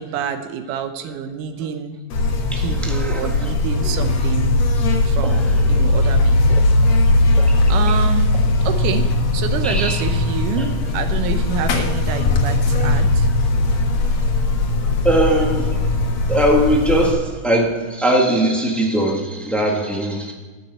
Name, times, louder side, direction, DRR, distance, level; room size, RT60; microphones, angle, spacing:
voice 1, 0.0-2.0 2.6-4.5 5.0-7.0 7.7-13.3, right 8 dB, 80° right, 7 dB, 2.5 m, -28 dB
Buzz, 2.1-17.1, left 2 dB, 65° left, 2.4 m, -18 dB
voice 2, 2.8-3.5 5.2-5.8 6.8-7.0 7.4-8.0 9.6-10.0 10.6-10.7 15.0-15.8 16.3-20.3, right 1 dB, ahead, -1 dB, 0.9 m, -20 dB
13.5 x 6.3 x 7.8 m, 1.3 s
omnidirectional pair, 3.6 m